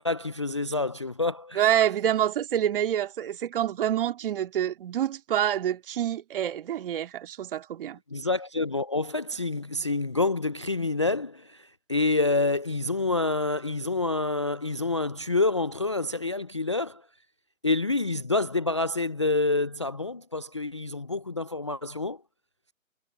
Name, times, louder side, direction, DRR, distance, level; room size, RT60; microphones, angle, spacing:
voice 1, 0.0-1.7 8.1-17.0 17.6-22.2, left 3 dB, 25° left, 0.4 m, -27 dB
voice 2, 1.6-8.0, right 11 dB, 40° right, 2.3 m, -27 dB
figure-of-eight pair, 140°, 41 cm